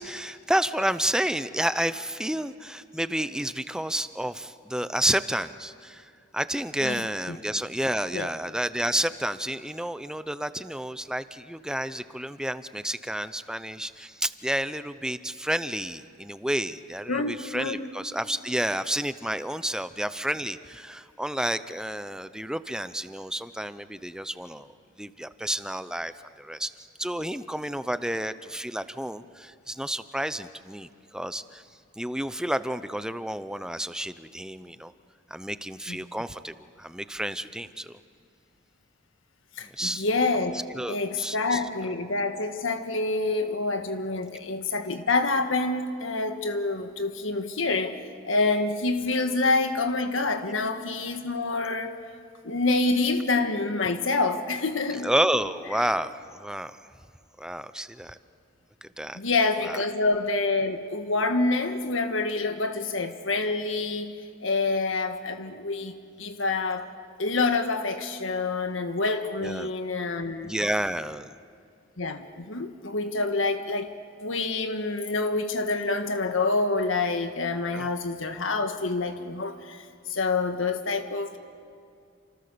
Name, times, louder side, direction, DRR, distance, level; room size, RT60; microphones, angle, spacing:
voice 1, 0.0-31.6 32.0-34.9 35.3-38.0 39.6-40.0 40.7-41.6 54.9-56.8 57.4-58.2 58.8-59.2 59.7-59.8 69.4-69.7 70.4-71.4 77.7-77.9, right 1 dB, 5° right, 12 dB, 0.7 m, -30 dB
voice 2, 17.1-17.9 35.9-36.0 39.6-40.6 40.9-48.0 48.2-52.0 52.4-55.1 59.1-64.2 64.4-66.9 67.2-70.5 72.0-73.9 74.2-81.4, left 3 dB, 80° left, 7 dB, 1.6 m, -27 dB
29.5 x 27.0 x 6.9 m, 2.4 s
head